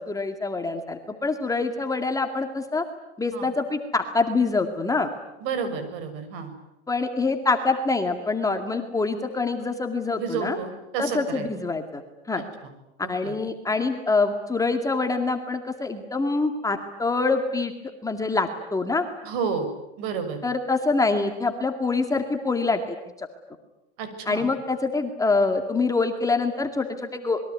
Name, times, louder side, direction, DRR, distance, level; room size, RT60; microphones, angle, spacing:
voice 1, 0.0-2.8 3.2-5.1 6.9-10.6 11.0-12.0 12.3-12.4 13.1-17.7 18.0-19.0 20.4-23.3 24.3-27.4, left 3 dB, 10° left, 5 dB, 2.1 m, -25 dB
voice 2, 5.4-6.5 10.2-11.5 13.2-13.3 19.2-19.7 20.0-20.4 24.0-24.5, right 6 dB, 55° right, 9 dB, 6.7 m, -30 dB
27.0 x 22.0 x 9.6 m, 0.94 s
hypercardioid pair, 130°, 35 cm